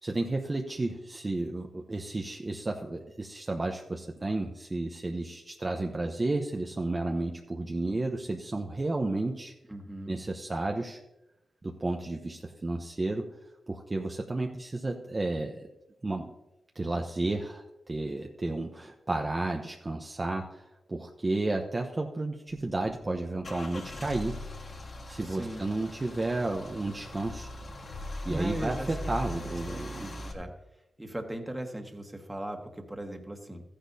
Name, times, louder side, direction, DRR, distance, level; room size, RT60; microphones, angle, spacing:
voice 1, 0.0-9.5 10.1-11.0 11.6-13.3 13.7-15.7 16.0-16.3 16.7-24.4 25.1-27.5 28.2-30.0, right 2 dB, 30° right, 2 dB, 0.9 m, -32 dB
voice 2, 9.7-10.2 25.2-25.6 28.2-28.9 29.7-30.5 31.0-33.6, right 1 dB, 15° right, 3 dB, 1.6 m, -38 dB
Car / Engine starting / Idling, 22.5-30.3, left 1 dB, 50° left, 1.7 m, -40 dB
14.0 x 10.0 x 2.8 m, 0.92 s
cardioid pair, 65°, 0 cm